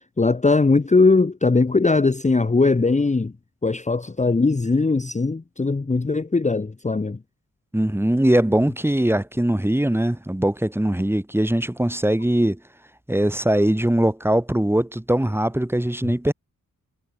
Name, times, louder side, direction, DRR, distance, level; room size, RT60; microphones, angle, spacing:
voice 1, 0.2-3.3 3.6-7.2, left 3 dB, 20° left, 1.0 m, -20 dB
voice 2, 7.7-12.6 13.1-16.3, right 1 dB, 5° right, 1.9 m, -21 dB
wide cardioid pair, 110°, 33 cm